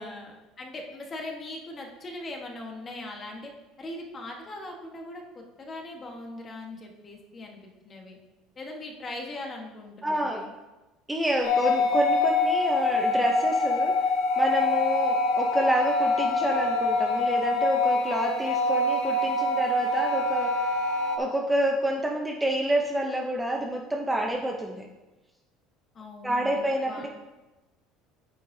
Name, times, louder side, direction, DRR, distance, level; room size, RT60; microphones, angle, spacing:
voice 1, 0.0-3.5 3.8-8.2 8.6-10.5 25.9-27.1, left 2 dB, 20° left, 1 dB, 1.3 m, -40 dB
voice 2, 10.0-10.5 11.1-13.9 14.4-20.5 21.2-24.9 26.2-27.1, right 1 dB, 5° right, 0 dB, 0.6 m, -28 dB
sound 1, 11.4-21.2, left 2 dB, 65° left, 0.9 m, -25 dB
9.6 x 8.8 x 2.7 m, 1.1 s
cardioid pair, 165°, 0 cm